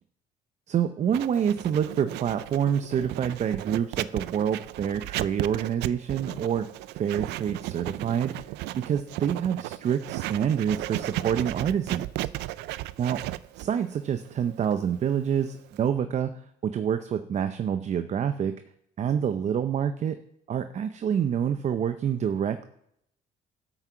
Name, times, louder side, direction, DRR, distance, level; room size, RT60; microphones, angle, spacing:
voice 1, 0.7-6.7 7.0-8.3 8.8-12.3 13.0-13.2 13.6-16.3 16.6-18.6 19.0-20.2 20.5-22.6, right 8 dB, 45° right, 9 dB, 0.6 m, -27 dB
Writing, 1.1-15.9, right 16 dB, 85° right, 0.4 m, -35 dB
12.0 x 6.1 x 6.9 m, 0.74 s
cardioid pair, 110°, 17 cm